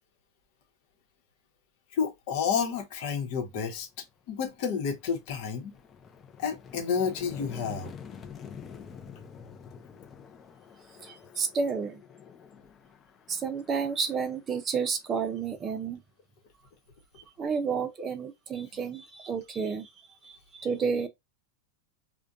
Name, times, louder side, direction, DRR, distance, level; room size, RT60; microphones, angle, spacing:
voice 1, 1.9-3.9 4.3-5.7 6.4-8.0, left 6 dB, 60° left, 0.9 m, -30 dB
sound 1, 3.9-4.1 4.5-15.3, left 7 dB, 25° left, 0.5 m, -48 dB
voice 2, 11.0-12.0 13.3-16.0 17.4-19.9 20.2-21.1, right 5 dB, 30° right, 0.6 m, -31 dB
2.5 x 2.2 x 2.4 m
supercardioid pair, 120°, 0 cm